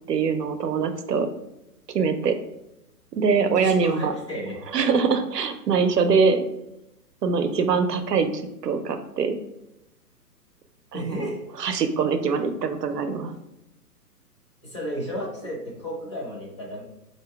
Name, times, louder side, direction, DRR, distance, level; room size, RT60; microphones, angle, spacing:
voice 1, 0.1-1.3 1.9-2.4 3.1-4.1 4.7-6.4 7.2-8.3 8.6-9.4 10.9-11.3 11.6-13.3, right 5 dB, 80° right, 8 dB, 0.6 m, -23 dB
voice 2, 3.5-4.6 10.9-11.4 14.6-16.8, equal, 20° left, -3 dB, 0.4 m, -33 dB
3.9 x 2.7 x 3.3 m, 0.87 s
figure-of-eight pair, 125°, 47 cm